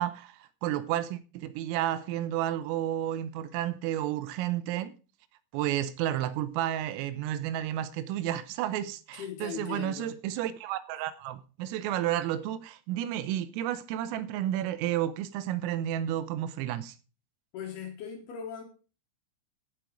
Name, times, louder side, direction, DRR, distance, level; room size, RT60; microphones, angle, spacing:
voice 1, 0.0-4.9 5.5-17.0, right 12 dB, 85° right, 3.4 m, -31 dB
voice 2, 9.1-10.1 17.5-18.6, left 8 dB, 70° left, 2.7 m, -39 dB
15.5 x 6.1 x 5.0 m
omnidirectional pair, 5.8 m